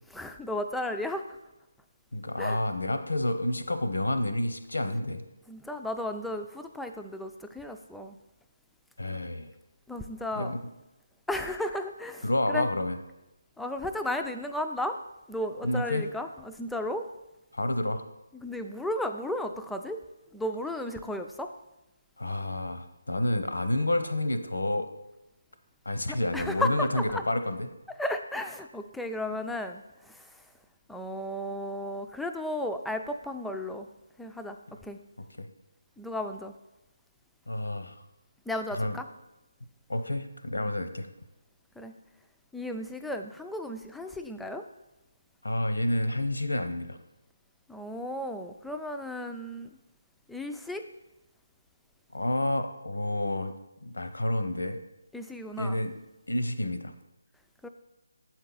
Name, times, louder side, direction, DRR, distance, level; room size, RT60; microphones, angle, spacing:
voice 1, 0.1-1.4 2.4-2.6 5.5-8.2 9.9-10.5 11.3-12.7 13.6-15.0 15.3-17.0 18.4-20.0 20.3-21.5 26.3-27.2 28.0-30.5 30.9-33.9 34.2-34.6 34.8-35.0 36.0-36.5 38.5-39.0 41.8-41.9 42.5-44.7 47.7-49.8 50.3-50.9 55.1-55.8 57.6-57.7, left 1 dB, ahead, 6 dB, 0.3 m, -34 dB
voice 2, 2.1-5.2 9.0-9.5 10.4-10.6 12.2-13.0 15.6-16.1 17.5-18.1 22.2-24.9 25.8-27.7 35.2-35.5 37.5-38.1 38.7-39.0 39.9-41.1 45.4-47.0 52.1-53.5 53.8-54.8 55.6-55.9 56.3-56.9, left 1 dB, 90° left, 9 dB, 0.7 m, -29 dB
7.7 x 4.4 x 3.9 m, 0.96 s
figure-of-eight pair, 155°, 0 cm